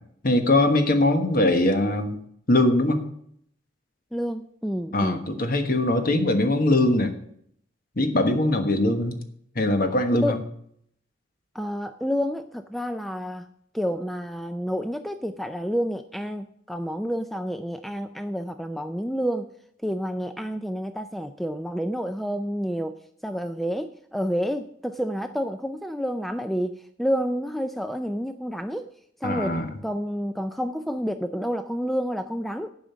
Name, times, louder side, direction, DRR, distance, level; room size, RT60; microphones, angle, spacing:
voice 1, 0.2-2.1 2.5-3.0 4.9-7.1 8.0-9.2 9.5-10.4 29.2-29.7, left 1 dB, 50° left, 7 dB, 1.3 m, -21 dB
voice 2, 4.1-5.3 10.2-10.4 11.5-13.5 13.7-19.5 19.8-28.9 29.2-32.7, equal, ahead, 9 dB, 0.3 m, -29 dB
10.5 x 5.1 x 8.4 m, 0.68 s
head